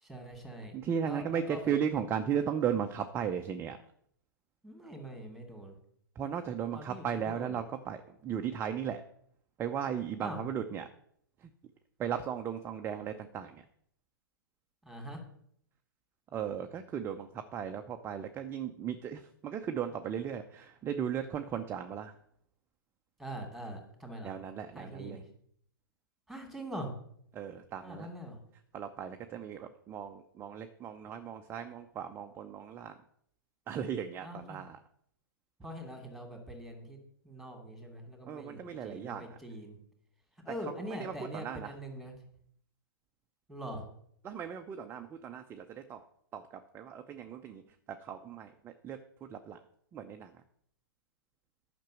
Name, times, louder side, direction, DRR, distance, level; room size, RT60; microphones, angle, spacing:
voice 1, 0.0-0.7 1.0-1.7 4.6-5.8 6.7-7.6 10.2-10.4 14.8-15.2 23.2-24.3 24.7-25.2 26.3-26.9 27.8-28.4 34.2-34.6 35.6-37.0 37.2-39.8 40.4-42.1 43.5-43.9, equal, ahead, 3 dB, 2.6 m, -43 dB
voice 2, 0.7-3.8 6.2-8.0 8.2-9.0 9.6-10.9 12.0-13.6 16.3-22.1 24.2-25.2 27.3-28.1 28.7-32.9 33.7-34.8 38.3-39.3 40.8-41.7 44.2-46.0 46.3-47.6 47.9-49.0 49.3-49.6 49.9-50.3, right 8 dB, 20° right, 6 dB, 0.7 m, -36 dB
10.5 x 6.0 x 7.6 m, 0.67 s
figure-of-eight pair, 115°, 12 cm